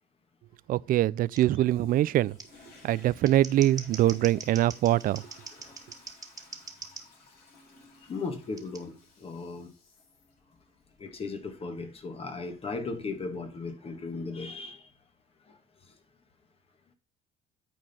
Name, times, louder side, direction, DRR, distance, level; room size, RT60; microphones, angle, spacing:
voice 1, 0.7-2.4 2.8-5.2, right 14 dB, 60° right, 0.4 m, -23 dB
Scissors, 1.3-1.4 2.4-2.5 3.1-7.0 8.6-8.8, right 4 dB, 20° right, 1.7 m, -43 dB
Toilet flush, 1.6-14.0 14.6-14.7, left 3 dB, 60° left, 5.3 m, -56 dB
voice 2, 8.1-9.7 11.0-14.9 15.5-15.6 15.9-16.0, left 4 dB, 35° left, 1.7 m, -37 dB
9.0 x 4.4 x 5.4 m
cardioid pair, 110°, 17 cm